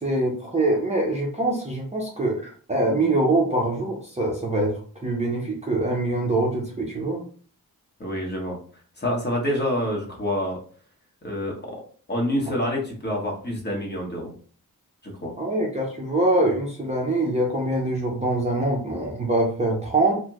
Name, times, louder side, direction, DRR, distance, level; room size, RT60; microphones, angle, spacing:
voice 1, 0.0-7.2 15.4-20.1, right 2 dB, 20° right, -2 dB, 0.5 m, -24 dB
voice 2, 8.0-8.6 9.0-10.6 11.2-11.8 12.1-14.3 15.2-15.3, left 1 dB, 30° left, -2 dB, 0.9 m, -27 dB
2.8 x 2.1 x 3.4 m, 0.43 s
wide cardioid pair, 155°, 37 cm